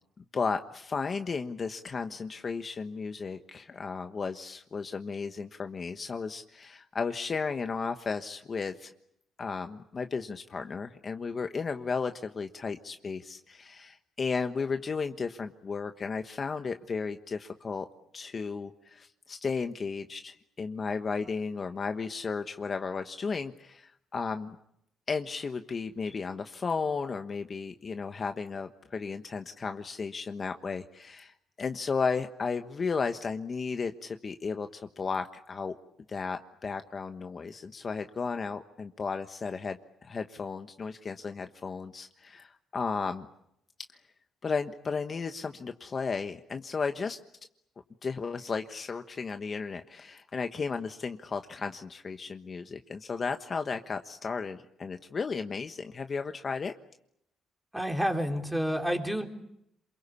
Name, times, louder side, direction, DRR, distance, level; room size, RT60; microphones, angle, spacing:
voice 1, 0.3-8.9 9.4-17.9 18.1-24.6 25.1-35.8 36.1-43.3 44.4-47.2 48.0-56.7, left 5 dB, 40° left, 7 dB, 1.2 m, -34 dB
voice 2, 57.7-59.2, equal, 5° right, 3 dB, 3.9 m, -29 dB
28.0 x 22.5 x 8.5 m, 0.77 s
cardioid pair, 90°, 0 cm